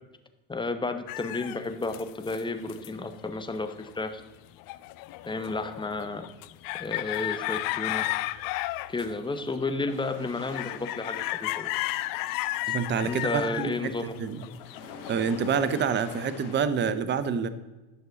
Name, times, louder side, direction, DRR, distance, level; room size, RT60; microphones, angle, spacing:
voice 1, 0.5-4.2 5.2-6.2 6.8-8.0 8.9-11.7 12.7-12.8 13.0-14.1, left 3 dB, 10° left, 8 dB, 0.9 m, -32 dB
sound 1, 1.1-4.2 4.6-16.3, left 17 dB, 55° left, 0.5 m, -34 dB
sound 2, 9.9-16.5, left 4 dB, 75° left, 1.8 m, -46 dB
voice 2, 12.7-14.4 15.1-17.5, right 6 dB, 25° right, 13 dB, 0.6 m, -27 dB
11.0 x 6.2 x 4.0 m, 1.1 s
hypercardioid pair, 85°, 43 cm